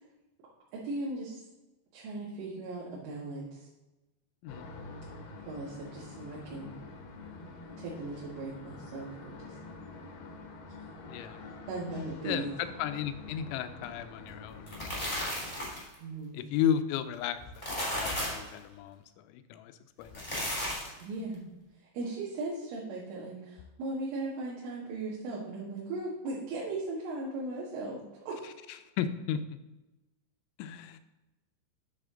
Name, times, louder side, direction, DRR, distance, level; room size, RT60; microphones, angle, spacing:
voice 1, 0.7-1.4 1.9-3.7 5.5-6.8 7.8-9.6 11.7-12.5 16.0-16.4 21.0-21.4 21.9-28.0 28.3-28.4, right 2 dB, 85° right, -6 dB, 4.2 m, -37 dB
sound 1, 4.5-15.5, left 3 dB, 65° left, 2.3 m, -47 dB
voice 2, 11.1-11.5 12.2-15.3 16.3-20.6 28.4-29.4 30.6-31.0, left 9 dB, 85° left, 10 dB, 3.0 m, -35 dB
sound 2, 14.5-15.9 17.4-18.5 20.0-21.0, equal, 10° left, 2.3 m, -34 dB
10.0 x 7.0 x 3.8 m, 1.0 s
omnidirectional pair, 5.5 m